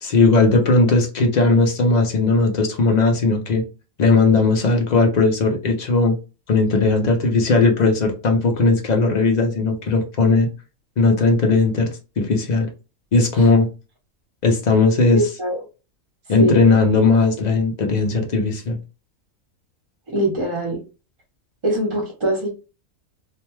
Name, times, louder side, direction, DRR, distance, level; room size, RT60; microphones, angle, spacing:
voice 1, 0.0-3.6 4.0-6.2 6.5-10.5 11.0-11.9 12.2-12.7 13.1-13.7 14.4-15.2 16.3-18.8, left 3 dB, 60° left, 0.4 m, -17 dB
voice 2, 15.1-15.6 16.4-16.6 20.1-20.8 21.6-22.5, right 1 dB, 30° right, 0.6 m, -22 dB
2.5 x 2.2 x 3.0 m
omnidirectional pair, 1.4 m